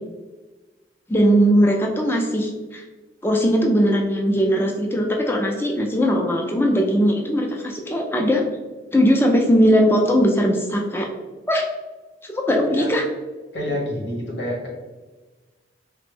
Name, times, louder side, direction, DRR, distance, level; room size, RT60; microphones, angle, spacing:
voice 1, 1.1-2.8 3.2-8.4 8.9-11.1 11.5-11.7 12.3-13.0, equal, 10° left, 1 dB, 0.3 m, -19 dB
voice 2, 12.5-13.0 13.5-14.7, left 1 dB, 85° left, -3 dB, 1.1 m, -28 dB
3.3 x 2.0 x 3.3 m, 1.2 s
head